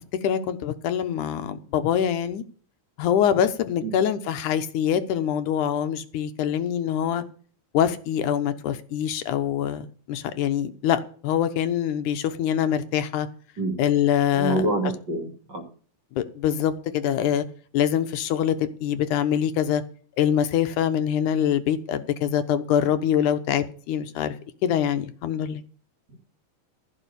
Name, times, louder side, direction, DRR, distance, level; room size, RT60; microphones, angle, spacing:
voice 1, 0.2-2.4 3.0-7.2 7.7-13.3 13.8-14.7 16.2-17.5 17.7-19.8 20.2-24.3 24.6-25.6, left 9 dB, 75° left, 2.4 m, -24 dB
voice 2, 14.3-15.7, right 2 dB, 35° right, 2.5 m, -27 dB
15.5 x 5.5 x 8.3 m
omnidirectional pair, 3.6 m